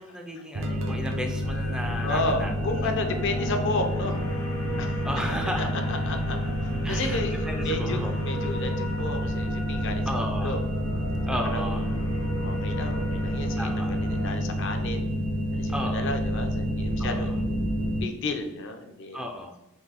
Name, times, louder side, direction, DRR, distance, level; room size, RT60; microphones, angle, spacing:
voice 1, 0.0-2.5 2.8-2.9 5.0-5.7 6.8-8.1 10.1-10.6 11.3-11.9 13.6-14.0 15.7-16.1 17.0-17.3 19.1-19.6, equal, 5° right, 2 dB, 0.3 m, -34 dB
sound 1, 0.5-18.0, equal, 65° right, 0.6 m, -29 dB
sound 2, 1.4-14.3, right 1 dB, 75° left, 0.9 m, -35 dB
voice 2, 2.0-4.2 4.8-5.0 5.9-10.6 11.5-15.1 15.5-17.5 18.0-19.2, left 2 dB, 60° left, 5 dB, 0.6 m, -33 dB
3.8 x 2.7 x 4.0 m, 0.90 s
head